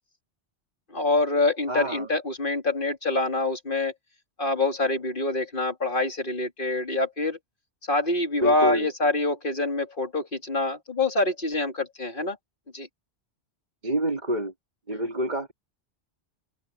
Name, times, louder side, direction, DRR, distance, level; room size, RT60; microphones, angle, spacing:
voice 1, 0.9-3.9 4.4-7.4 7.9-12.4 12.7-12.9 14.9-15.1, left 2 dB, 50° left, 3.4 m, -25 dB
voice 2, 1.7-2.1 8.4-8.9 13.8-14.5 14.9-15.5, right 1 dB, 40° right, 2.5 m, -27 dB
open air
omnidirectional pair, 1.2 m